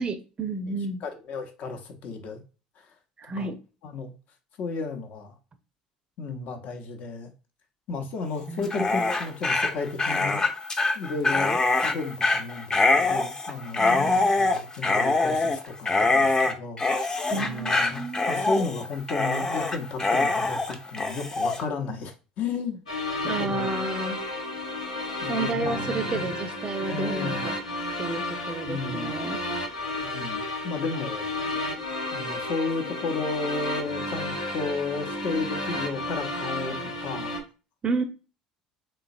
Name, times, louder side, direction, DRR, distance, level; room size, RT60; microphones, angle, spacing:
voice 1, 0.0-1.0 3.2-3.6 8.5-9.0 13.8-14.3 17.3-18.4 23.3-24.2 25.3-27.5 28.0-29.4 37.8-38.0, right 3 dB, 30° right, 0.5 m, -31 dB
voice 2, 1.0-2.4 2.8-2.9 3.4-3.5 3.8-4.1 4.6-5.3 6.2-7.3 7.9-10.5 10.9-16.8 17.3-22.8 23.4-23.8 25.2-26.3 26.8-27.5 28.7-29.2 30.0-31.3 32.1-37.3, left 4 dB, 50° left, 0.7 m, -33 dB
Dog, 8.6-21.6, left 3 dB, 20° left, 0.6 m, -24 dB
sound 1, 22.9-37.4, left 1 dB, 85° left, 0.9 m, -32 dB
3.8 x 3.1 x 2.6 m
figure-of-eight pair, 60°, 3 cm